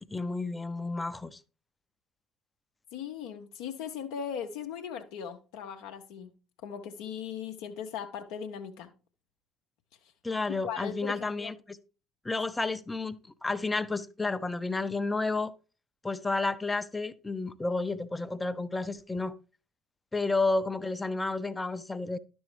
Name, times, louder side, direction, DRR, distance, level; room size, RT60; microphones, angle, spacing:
voice 1, 0.1-1.4 10.2-11.8 12.2-13.2 13.4-15.5 16.0-19.3 20.1-22.2, left 3 dB, 15° left, 0.5 m, -31 dB
voice 2, 2.9-6.3 6.6-8.9 10.0-10.1 10.5-11.6, left 8 dB, 60° left, 0.6 m, -38 dB
11.0 x 6.1 x 3.2 m
figure-of-eight pair, 60°, 0 cm